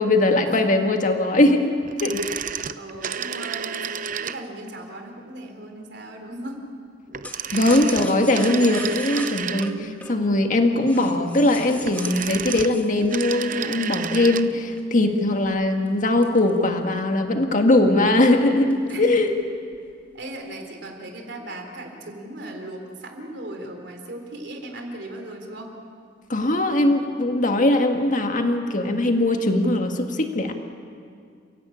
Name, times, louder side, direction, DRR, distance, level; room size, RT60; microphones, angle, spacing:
voice 1, 0.0-1.7 2.0-2.2 7.5-19.3 26.3-30.5, left 2 dB, 45° left, 5 dB, 1.8 m, -20 dB
sound 1, 1.8-4.7 7.1-10.0 11.7-14.5 14.8-14.9, right 8 dB, 45° right, 0.6 m, -31 dB
voice 2, 2.8-6.6 7.3-8.9 9.6-10.0 14.1-14.5 17.8-18.5 18.9-19.2 20.1-25.7, right 1 dB, 65° right, 3 dB, 3.9 m, -37 dB
sound 2, 7.2-14.2 14.7-17.1 17.5-17.6 17.9-18.3 18.7-19.4 19.7-20.3, left 1 dB, 10° left, 1.8 m, -40 dB
29.5 x 16.0 x 8.7 m, 2.2 s
head